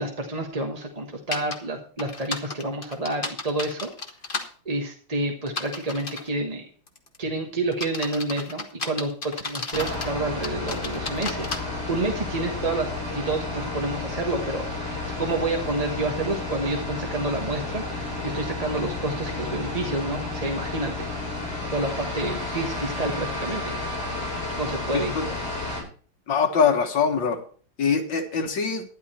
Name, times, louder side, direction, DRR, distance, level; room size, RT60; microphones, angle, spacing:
voice 1, 0.0-3.9 4.6-6.7 7.2-11.6 11.9-12.9 13.1-21.1 21.7-23.8 24.6-25.1, right 2 dB, 25° right, 2 dB, 1.2 m, -29 dB
sound 1, 1.3-1.6 2.0-4.5 5.5-6.3 6.9-7.2 7.7-10.1 10.4-11.6, left 3 dB, 30° left, 1.5 m, -33 dB
sound 2, 9.7-25.8, left 2 dB, 60° left, 8.9 m, -31 dB
voice 2, 26.3-27.4 27.8-28.8, left 6 dB, 80° left, 5 dB, 2.2 m, -23 dB
12.0 x 11.0 x 4.4 m, 0.42 s
omnidirectional pair, 2.0 m